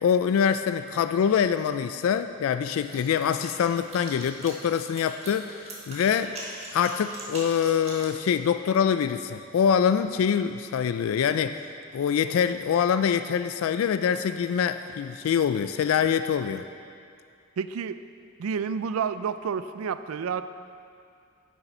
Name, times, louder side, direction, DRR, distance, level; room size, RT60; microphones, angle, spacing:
voice 1, 0.0-6.4 6.7-11.6 11.9-16.6, left 7 dB, 80° left, 11 dB, 0.3 m, -24 dB
sound 1, 2.7-8.1, right 2 dB, 30° right, 1.6 m, -42 dB
voice 2, 17.6-18.0 18.4-20.4, right 6 dB, 85° right, 12 dB, 0.4 m, -29 dB
10.0 x 8.1 x 4.3 m, 2.4 s
head